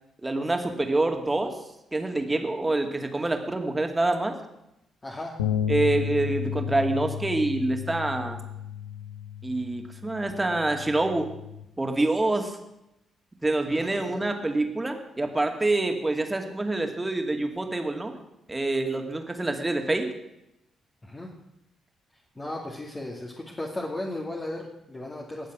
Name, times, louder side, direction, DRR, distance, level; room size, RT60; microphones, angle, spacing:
voice 1, 0.2-1.6 1.9-4.3 5.7-8.4 9.4-11.3 11.8-12.5 13.4-18.1 18.5-20.1, right 2 dB, 20° right, 4 dB, 2.5 m, -26 dB
voice 2, 5.0-5.3 13.7-14.2 21.0-21.3 22.4-25.5, left 1 dB, 25° left, -2 dB, 2.5 m, -35 dB
sound 1, 5.4-11.6, left 8 dB, 85° left, 0.9 m, -33 dB
20.0 x 7.4 x 6.2 m, 0.86 s
hypercardioid pair, 40°, 0 cm